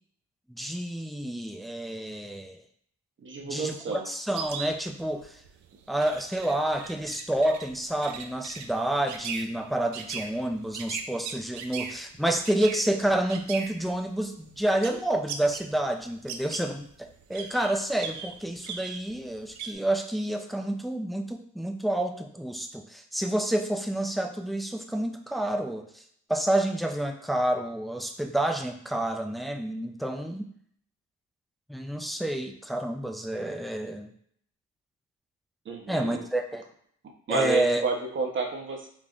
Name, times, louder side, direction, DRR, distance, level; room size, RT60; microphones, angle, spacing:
voice 1, 0.5-2.6 3.4-5.3 5.9-26.0 26.3-30.5 31.7-34.1 35.9-36.6 37.3-37.8, right 1 dB, ahead, 4 dB, 0.3 m, -29 dB
voice 2, 3.2-4.1 35.6-36.2 37.3-38.9, right 4 dB, 40° right, 1 dB, 0.8 m, -30 dB
sound 1, 4.3-15.7 16.0-19.7, right 6 dB, 70° right, 0.5 m, -39 dB
3.8 x 3.3 x 2.4 m, 0.64 s
cardioid pair, 90°, 30 cm